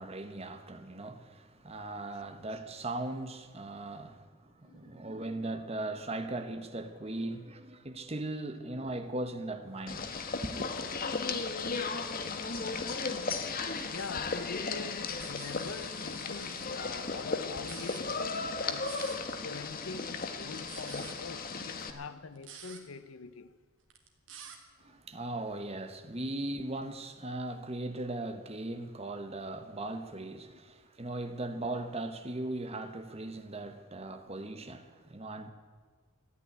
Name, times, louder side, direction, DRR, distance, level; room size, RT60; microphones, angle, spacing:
voice 1, 0.0-10.1 10.4-10.7 24.8-35.5, right 2 dB, 30° right, 1.1 m, -38 dB
voice 2, 4.6-5.1 7.1-7.3 12.3-12.9 13.9-23.5 24.9-25.0 30.2-30.3 34.3-34.5, left 4 dB, 70° left, 0.6 m, -44 dB
sound 1, 9.9-21.9, left 4 dB, 45° left, 1.0 m, -35 dB
sound 2, 15.2-16.7 17.5-18.0 18.8-19.2 20.4-21.1 22.4-22.8 23.9-24.6, right 7 dB, 60° right, 2.0 m, -49 dB
14.0 x 9.5 x 10.0 m
head